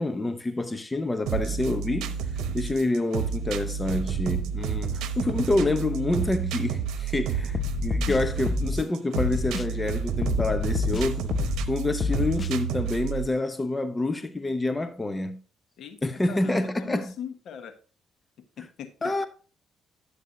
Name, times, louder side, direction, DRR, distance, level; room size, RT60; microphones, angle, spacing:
voice 1, 0.0-2.2 2.5-11.3 11.7-15.4 16.0-17.1 19.0-19.3, left 2 dB, 15° left, 0.8 m, -27 dB
sound 1, 1.3-13.3, right 7 dB, 85° right, 0.9 m, -30 dB
sound 2, 7.5-8.8 9.2-9.7 10.2-11.7 12.0-12.5, left 5 dB, 40° left, 0.3 m, -28 dB
voice 2, 15.8-17.8 18.4-19.1, left 8 dB, 65° left, 1.3 m, -41 dB
11.0 x 8.2 x 2.7 m
cardioid pair, 90°, 0 cm